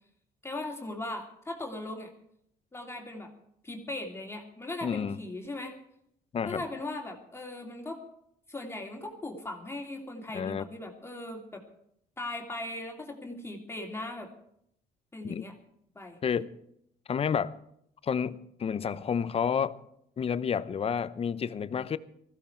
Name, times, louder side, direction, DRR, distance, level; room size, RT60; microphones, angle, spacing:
voice 1, 0.4-2.1 2.7-3.3 3.6-5.8 6.5-8.0 8.5-11.6 12.2-14.3 15.1-15.5 15.9-16.2, left 2 dB, 15° left, 2.8 m, -38 dB
voice 2, 4.8-5.2 6.3-6.6 10.3-10.6 15.2-15.4 16.2-16.5 17.1-17.5 18.0-19.8 20.2-22.0, left 7 dB, 35° left, 0.8 m, -30 dB
20.0 x 15.5 x 4.6 m
cardioid pair, 110°, 17 cm